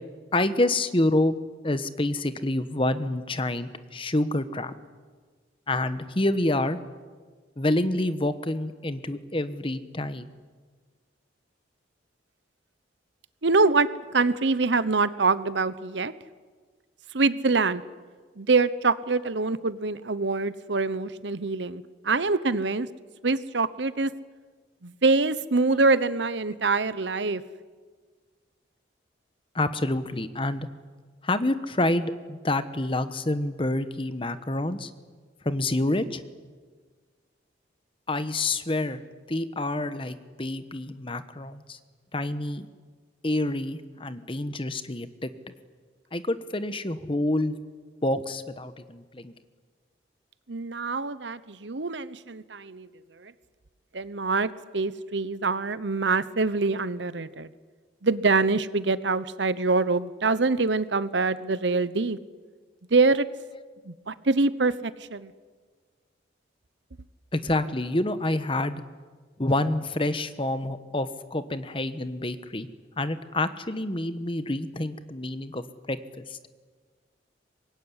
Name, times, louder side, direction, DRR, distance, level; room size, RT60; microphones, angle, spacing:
voice 1, 0.3-1.3 1.6-4.7 5.7-6.8 7.6-10.3 29.5-30.7 31.2-34.9 35.4-36.2 38.1-39.0 39.3-41.8 42.1-42.7 43.2-45.3 46.1-47.5 48.0-49.3 67.3-68.8 69.4-72.7 73.0-76.4, left 1 dB, 30° left, 12 dB, 1.2 m, -27 dB
voice 2, 13.4-13.9 14.1-16.1 17.1-17.8 18.4-22.9 23.2-24.1 24.8-27.4 50.5-52.9 53.2-53.3 53.9-57.5 58.0-62.2 62.9-63.3 63.8-65.3, right 3 dB, 75° right, 15 dB, 1.0 m, -25 dB
24.5 x 21.0 x 9.9 m, 1.5 s
head